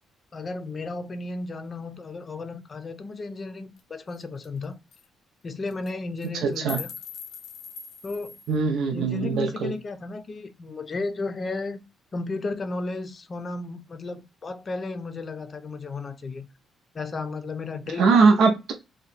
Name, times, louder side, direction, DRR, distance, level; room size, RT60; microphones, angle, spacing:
voice 1, 0.3-4.7 5.4-6.9 8.0-8.4 8.9-11.8 12.1-16.5 16.9-18.1, left 3 dB, 40° left, 0.5 m, -34 dB
sound 1, 3.8-3.9 4.1-4.2 4.4-4.6 4.9-5.0 5.7-5.9 6.2-8.5, left 6 dB, 85° left, 0.5 m, -40 dB
voice 2, 6.3-6.8 8.5-9.7 18.0-18.7, right 4 dB, 80° right, 0.6 m, -21 dB
2.8 x 2.2 x 4.0 m
cardioid pair, 90°, 0 cm